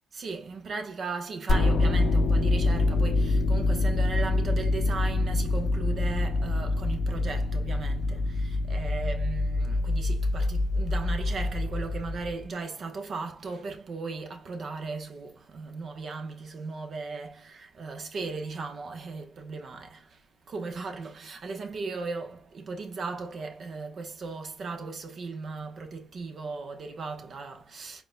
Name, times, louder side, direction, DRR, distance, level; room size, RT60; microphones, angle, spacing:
voice 1, 0.1-28.0, right 4 dB, 50° right, 1.1 m, -37 dB
sound 1, 1.5-12.5, left 2 dB, 55° left, 0.8 m, -26 dB
4.7 x 3.9 x 2.3 m
cardioid pair, 90°, 0 cm